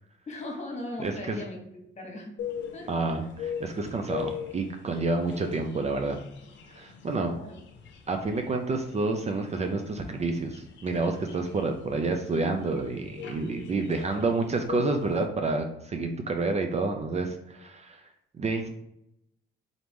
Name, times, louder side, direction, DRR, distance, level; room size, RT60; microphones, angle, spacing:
voice 1, 0.3-1.6 1.9-2.3 2.7-3.3 7.2-7.5, left 1 dB, 35° left, 1 dB, 1.4 m, -39 dB
voice 2, 1.0-1.4 2.9-6.2 6.7-7.4 8.1-18.0 18.3-18.7, right 3 dB, 35° right, 5 dB, 0.5 m, -29 dB
sound 1, 2.4-15.2, left 8 dB, 65° left, 0.7 m, -41 dB
3.9 x 3.0 x 3.5 m, 0.81 s
cardioid pair, 90°, 20 cm